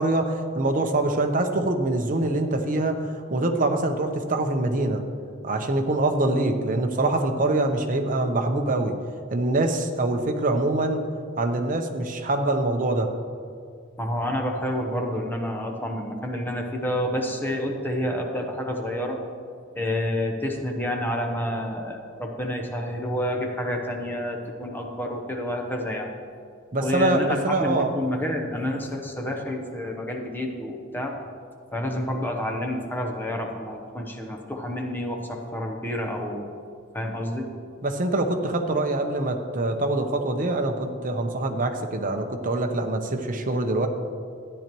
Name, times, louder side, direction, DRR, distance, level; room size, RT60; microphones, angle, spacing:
voice 1, 0.0-5.0 5.4-8.9 9.3-11.0 11.4-13.1 26.7-27.9 37.8-43.9, right 2 dB, 40° right, 5 dB, 0.8 m, -24 dB
voice 2, 14.0-19.2 19.7-26.1 26.8-31.2 31.7-36.5 36.9-37.5, left 1 dB, 10° left, 1 dB, 0.9 m, -29 dB
13.5 x 10.0 x 3.0 m, 2.3 s
head